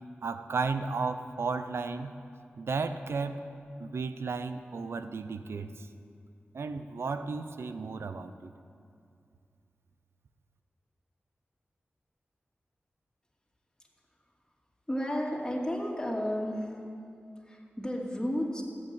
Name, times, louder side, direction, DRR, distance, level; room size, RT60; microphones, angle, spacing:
voice 1, 0.2-2.1 2.6-3.4 3.8-5.9 6.5-8.5, right 4 dB, 85° right, 10 dB, 0.7 m, -34 dB
voice 2, 14.9-16.8 17.4-18.6, equal, 15° left, -2 dB, 2.8 m, -32 dB
14.5 x 8.0 x 9.2 m, 2.4 s
wide cardioid pair, 60°, 4 cm